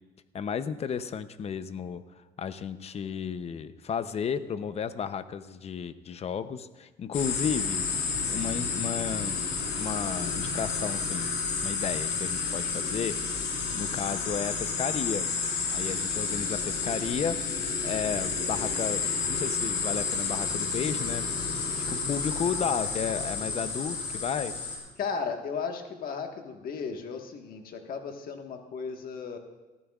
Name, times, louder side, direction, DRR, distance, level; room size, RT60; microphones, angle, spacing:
voice 1, 0.3-2.0 2.4-7.9 8.3-9.4 9.7-11.3 11.6-13.2 13.8-15.3 15.7-21.2 21.9-24.6, left 7 dB, 40° left, 12 dB, 0.7 m, -33 dB
sound 1, 7.1-24.8, left 5 dB, 85° left, 4.1 m, -31 dB
voice 2, 25.0-29.4, left 5 dB, 60° left, 4 dB, 1.5 m, -35 dB
18.0 x 14.0 x 2.4 m, 1.2 s
cardioid pair, 110°, 17 cm